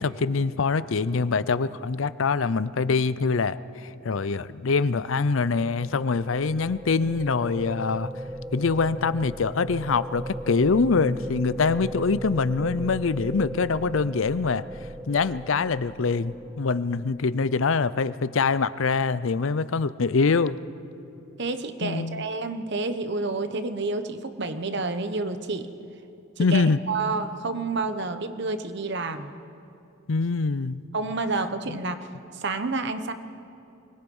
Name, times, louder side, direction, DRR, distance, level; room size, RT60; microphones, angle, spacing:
voice 1, 0.0-8.1 8.5-14.6 15.1-20.6 21.8-22.2 26.4-26.8 30.1-30.8 31.7-31.8, left 4 dB, 70° left, 16 dB, 0.6 m, -24 dB
sound 1, 5.3-17.5, equal, 10° right, 0.4 m, -37 dB
voice 2, 21.4-25.7 26.4-29.3 30.9-32.1 32.3-33.1, right 3 dB, 55° right, 9 dB, 1.1 m, -29 dB
24.5 x 20.5 x 5.5 m, 2.7 s
head